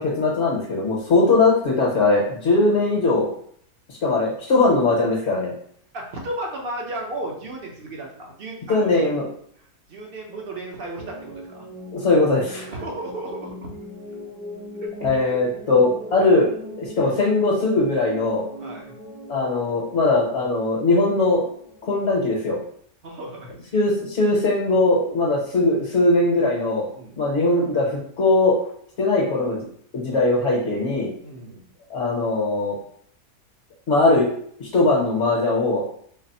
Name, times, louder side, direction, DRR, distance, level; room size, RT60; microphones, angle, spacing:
voice 1, 0.0-3.3 3.9-5.5 8.7-9.3 11.9-12.7 15.0-18.5 19.3-21.4 21.8-22.6 23.7-26.9 27.2-28.7 29.0-29.7 29.9-31.1 31.9-32.7 33.9-34.3 34.6-35.8, left 2 dB, 55° left, -3 dB, 1.1 m, -20 dB
voice 2, 5.9-9.1 9.9-11.7 12.7-13.7 14.8-15.4 18.6-18.9 23.0-23.7 26.9-27.2 31.2-31.7, right 1 dB, 45° right, 0 dB, 0.8 m, -34 dB
sound 1, 11.0-22.3, equal, 65° right, 1.4 m, -40 dB
4.0 x 2.0 x 4.1 m, 0.62 s
omnidirectional pair, 1.7 m